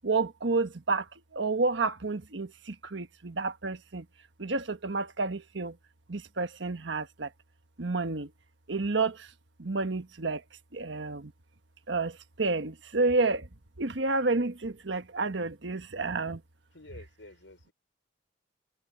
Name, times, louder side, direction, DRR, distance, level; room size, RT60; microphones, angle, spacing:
voice 1, 0.0-1.1 1.3-4.0 4.4-5.7 6.1-7.3 7.8-8.3 8.7-9.3 9.6-10.4 10.7-11.3 11.9-13.5 13.8-16.4, right 3 dB, 75° right, 1.3 m, -30 dB
voice 2, 16.7-17.7, left 2 dB, 90° left, 6.0 m, -50 dB
head